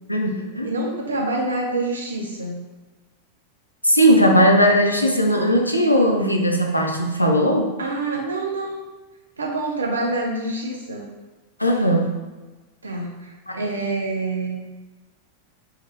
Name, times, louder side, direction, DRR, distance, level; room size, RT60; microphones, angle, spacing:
voice 1, 0.1-0.7 3.8-7.7 11.6-12.1 13.5-13.6, equal, 85° left, 2 dB, 0.5 m, -18 dB
voice 2, 0.6-2.6 7.8-8.8 9.4-11.1 12.8-14.6, right 2 dB, 75° right, 0 dB, 0.7 m, -26 dB
3.5 x 2.8 x 3.2 m, 1.2 s
figure-of-eight pair, 90°, 0 cm